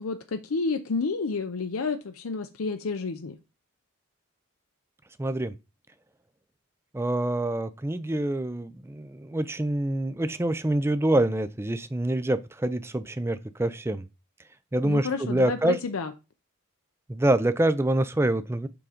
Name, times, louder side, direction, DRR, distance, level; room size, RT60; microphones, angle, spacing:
voice 1, 0.0-3.4 14.8-16.1, left 4 dB, 85° left, 0.6 m, -30 dB
voice 2, 5.2-5.5 6.9-14.0 14.7-15.8 17.1-18.7, right 1 dB, 10° right, 0.4 m, -26 dB
6.9 x 3.7 x 5.0 m
head